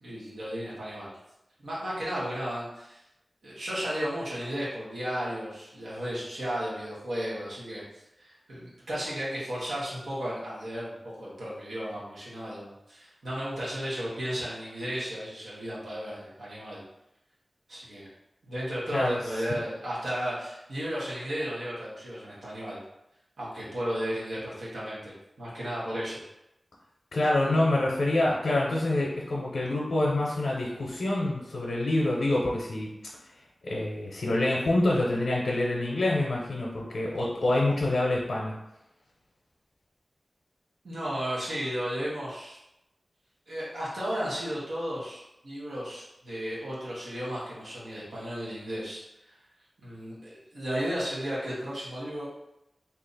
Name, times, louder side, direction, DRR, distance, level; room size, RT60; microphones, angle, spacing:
voice 1, 0.0-1.1 1.6-3.0 3.4-16.8 17.7-18.1 18.5-22.8 23.4-26.2 40.8-42.6 43.5-49.0 49.3-49.4 49.8-52.3, equal, 90° right, -7 dB, 1.1 m, -34 dB
voice 2, 18.9-19.5 27.1-32.9 33.6-38.5, left 1 dB, 85° left, -3 dB, 0.6 m, -26 dB
2.8 x 2.4 x 3.9 m, 0.88 s
wide cardioid pair, 65°, 0 cm